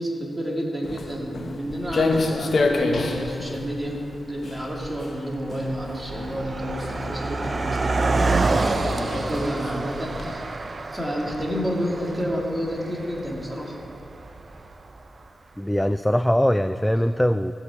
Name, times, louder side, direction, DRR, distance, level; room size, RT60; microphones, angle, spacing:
voice 1, 0.0-10.6 10.9-13.8, equal, 10° right, -2 dB, 2.6 m, -30 dB
Walk footsteps, 0.8-10.3, left 3 dB, 65° left, 1.1 m, -29 dB
Car passing by, 3.2-3.3 4.1-4.3 4.6-15.0, right 3 dB, 50° right, 0.6 m, -28 dB
voice 2, 15.6-17.5, equal, 5° left, 11 dB, 0.3 m, -21 dB
16.0 x 6.2 x 4.9 m, 2.6 s
supercardioid pair, 45°, 0 cm